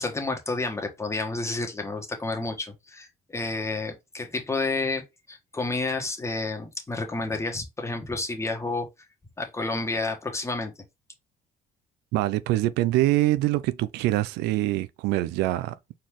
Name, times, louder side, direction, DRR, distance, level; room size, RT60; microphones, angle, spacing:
voice 1, 0.0-8.9 9.4-10.7, left 3 dB, 15° left, 1.4 m, -30 dB
voice 2, 12.1-15.7, right 16 dB, 90° right, 0.4 m, -24 dB
4.3 x 3.7 x 3.0 m
cardioid pair, 110°, 17 cm